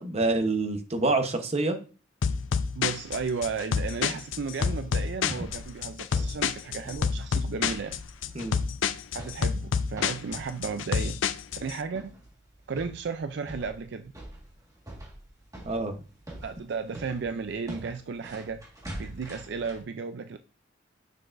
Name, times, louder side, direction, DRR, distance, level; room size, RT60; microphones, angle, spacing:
voice 1, 0.0-1.8 8.3-8.6 15.6-15.9, right 2 dB, 35° right, 0.9 m, -26 dB
sound 1, 2.2-11.7, left 6 dB, 85° left, 0.5 m, -28 dB
voice 2, 2.8-8.0 9.1-11.2 11.6-12.1 12.7-14.1 16.4-18.6 19.0-20.4, right 5 dB, 65° right, 0.4 m, -34 dB
sound 2, 4.2-19.8, right 1 dB, 20° right, 1.6 m, -46 dB
6.6 x 6.3 x 2.6 m
head